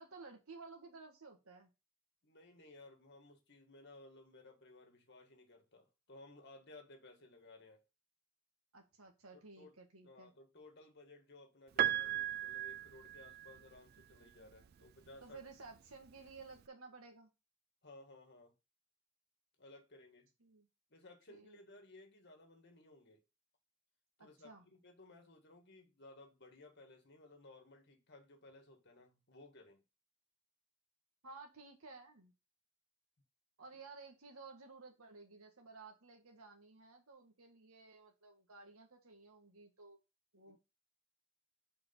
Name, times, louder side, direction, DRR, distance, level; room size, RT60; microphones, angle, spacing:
voice 1, 0.0-1.7 8.7-10.3 15.2-17.3 20.4-20.7 21.3-21.6 24.2-24.6 31.2-32.3 33.6-40.0 40.3-40.6, right 4 dB, 80° right, 1.6 m, -55 dB
voice 2, 2.2-7.8 9.3-9.8 10.0-15.4 17.8-18.5 19.6-20.3 20.9-23.2 24.2-29.8 40.5-40.6, left 2 dB, 50° left, 1.8 m, -59 dB
Piano, 11.8-13.8 15.1-15.2, right 12 dB, 45° right, 0.3 m, -36 dB
5.1 x 4.7 x 5.3 m
head